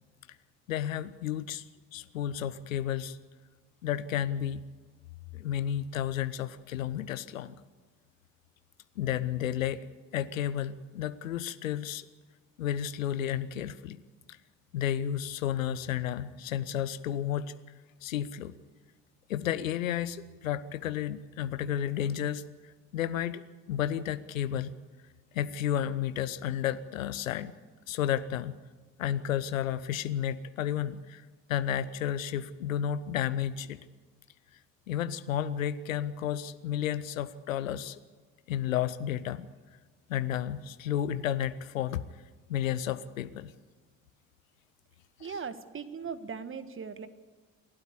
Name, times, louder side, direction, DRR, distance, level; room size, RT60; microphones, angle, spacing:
voice 1, 0.7-1.6 1.9-3.2 3.8-4.6 5.3-7.5 9.0-9.9 10.1-12.1 12.6-14.0 14.7-17.5 18.0-18.5 19.3-22.4 22.9-23.4 23.7-24.7 25.3-27.5 27.9-28.6 29.0-31.2 31.5-33.8 34.9-38.0 38.5-39.5 40.1-42.0 42.5-43.5 45.2-45.3, left 10 dB, 75° left, 15 dB, 0.8 m, -32 dB
voice 2, 45.2-47.1, right 6 dB, 30° right, 12 dB, 1.5 m, -39 dB
27.5 x 12.0 x 8.5 m, 1.4 s
figure-of-eight pair, 45°, 40 cm